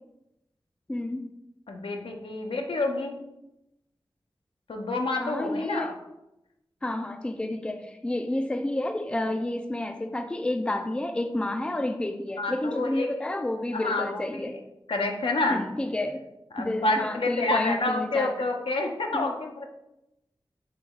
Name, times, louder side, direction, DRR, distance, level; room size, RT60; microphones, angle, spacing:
voice 1, 0.9-1.3 5.2-5.9 6.8-14.6 15.5-16.2 16.6-18.3 19.1-19.3, left 1 dB, 10° left, 7 dB, 0.3 m, -30 dB
voice 2, 1.7-3.1 4.7-5.9 12.4-13.1 13.7-14.4 14.9-15.7 16.5-19.7, left 2 dB, 85° left, 2 dB, 0.7 m, -28 dB
4.7 x 3.0 x 3.6 m, 0.90 s
wide cardioid pair, 75°, 9 cm